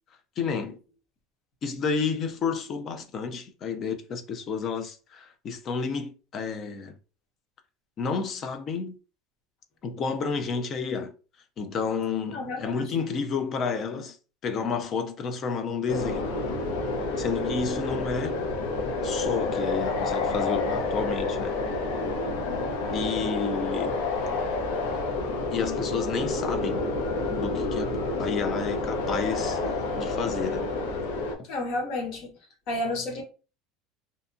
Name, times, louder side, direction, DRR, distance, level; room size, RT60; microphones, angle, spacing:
voice 1, 0.4-0.8 1.6-6.9 8.0-9.0 9.8-11.1 11.6-14.2 14.4-16.3 17.2-18.4 19.0-21.6 22.9-24.0 25.5-26.8 27.3-29.6 30.0-30.7, left 5 dB, 30° left, 0.4 m, -31 dB
sound 1, 15.9-31.4, left 3 dB, 80° left, 0.6 m, -29 dB
voice 2, 31.5-32.3 32.7-33.2, left 2 dB, 45° left, 0.9 m, -30 dB
2.7 x 2.2 x 2.5 m
cardioid pair, 165°, 0 cm